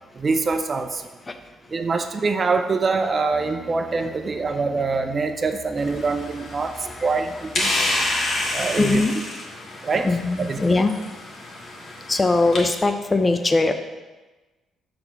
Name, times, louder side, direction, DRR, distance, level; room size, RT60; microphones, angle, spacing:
voice 1, 0.1-1.1 1.7-7.7 8.5-9.0 9.8-10.1 10.4-10.6, right 4 dB, 35° right, 6 dB, 0.4 m, -24 dB
sound 1, 3.3-9.1, equal, 5° left, 1.1 m, -46 dB
sound 2, 5.8-12.6, left 2 dB, 55° left, 1.5 m, -29 dB
voice 2, 8.8-9.1 9.9-10.9 12.1-13.7, left 3 dB, 25° left, 8 dB, 0.5 m, -20 dB
6.2 x 3.4 x 5.7 m, 1.2 s
cardioid pair, 90°, 0 cm